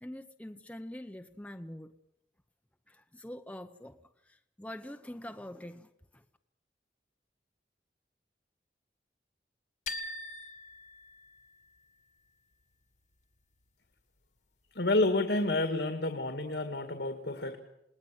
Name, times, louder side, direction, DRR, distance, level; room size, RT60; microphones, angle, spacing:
voice 1, 0.0-1.9 2.9-4.0 4.6-6.2, left 1 dB, 10° left, 7 dB, 0.8 m, -44 dB
sound 1, 9.9-11.8, left 3 dB, 45° left, 1.4 m, -42 dB
voice 2, 14.8-17.6, left 2 dB, 75° left, 6 dB, 2.1 m, -29 dB
28.5 x 19.5 x 7.7 m, 0.86 s
head